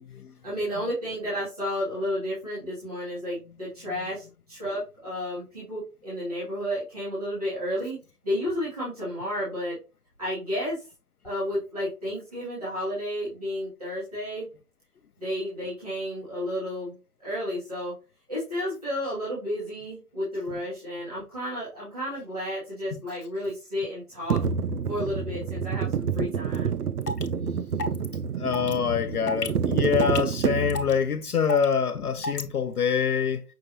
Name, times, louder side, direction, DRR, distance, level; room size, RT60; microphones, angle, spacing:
voice 1, 0.4-8.0 8.2-9.8 10.2-10.8 11.2-14.5 15.2-17.9 18.3-24.4 24.9-26.8, equal, 25° right, 1.8 m, -32 dB
sound 1, 24.3-31.0, right 6 dB, 75° right, 0.6 m, -28 dB
sound 2, 26.5-26.6 27.0-27.3 27.8-28.1 28.5-28.7 29.3-29.5 30.0-30.4 30.7-30.9 31.5-31.7 32.2-32.4, left 2 dB, 85° left, 0.9 m, -30 dB
voice 2, 28.4-33.4, left 7 dB, 70° left, 0.6 m, -25 dB
5.7 x 3.1 x 2.8 m
figure-of-eight pair, 180°, 47 cm